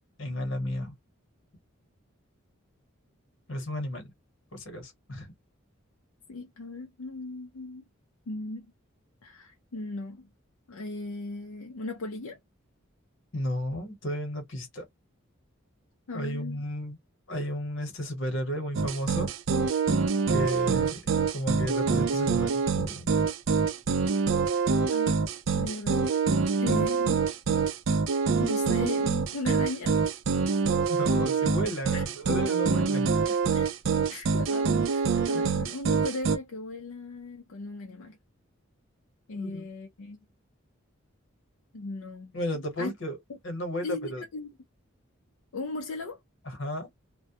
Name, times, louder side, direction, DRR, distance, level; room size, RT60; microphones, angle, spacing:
voice 1, 0.2-0.9 3.5-4.1 4.5-5.3 13.3-14.9 16.1-17.0 17.3-19.3 20.3-23.1 30.9-33.3 35.3-35.4 39.4-39.7 42.3-43.2 43.4-44.2 46.4-46.9, equal, 65° left, 1.1 m, -33 dB
voice 2, 6.3-7.8 8.3-8.7 9.2-10.3 10.7-12.4 16.1-16.6 24.9-25.2 25.5-26.1 26.6-27.2 27.9-28.0 28.4-29.9 31.9-32.1 33.5-33.7 34.1-38.2 39.3-40.2 41.7-42.4 42.8-42.9 43.8-44.5 45.5-46.2, left 3 dB, 80° left, 0.5 m, -37 dB
sound 1, 18.7-36.4, right 5 dB, 65° right, 0.4 m, -25 dB
2.1 x 2.1 x 2.7 m
head